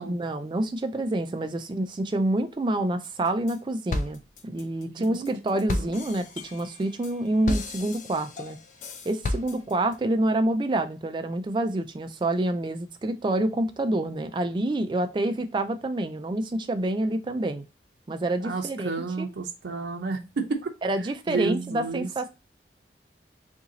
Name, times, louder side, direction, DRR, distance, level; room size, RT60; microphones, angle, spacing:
voice 1, 0.1-8.6 9.1-17.6 18.1-18.9 19.2-19.3 20.8-22.3, right 1 dB, 25° right, 0.3 m, -27 dB
sound 1, 3.0-3.6 3.9-9.9, left 2 dB, 45° left, 0.4 m, -33 dB
voice 2, 4.9-6.0 18.4-20.7 21.3-22.1, right 4 dB, 80° right, 0.5 m, -31 dB
2.8 x 2.7 x 3.7 m
head